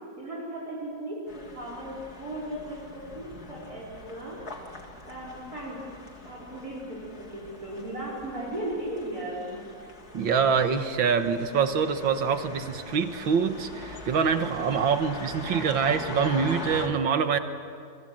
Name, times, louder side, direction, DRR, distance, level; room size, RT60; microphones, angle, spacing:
voice 1, 0.2-4.4 5.1-5.8 6.2-9.5, right 1 dB, 50° right, -4 dB, 5.5 m, -36 dB
sound 1, 1.3-16.9, left 2 dB, 50° left, 3.3 m, -42 dB
voice 2, 10.1-17.4, right 6 dB, 80° right, 8 dB, 2.1 m, -25 dB
29.5 x 24.0 x 7.7 m, 2.3 s
omnidirectional pair, 2.1 m